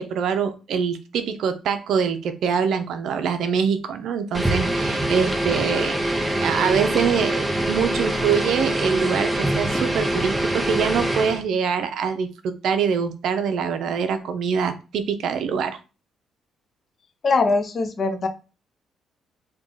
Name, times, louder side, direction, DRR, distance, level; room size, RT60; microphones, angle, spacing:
voice 1, 0.0-15.8, right 6 dB, 75° right, 9 dB, 0.5 m, -24 dB
sound 1, 4.3-11.4, right 1 dB, 10° right, 0.8 m, -24 dB
voice 2, 17.2-18.3, left 3 dB, 45° left, 7 dB, 0.7 m, -21 dB
3.4 x 2.3 x 3.8 m, 0.32 s
cardioid pair, 90°, 0 cm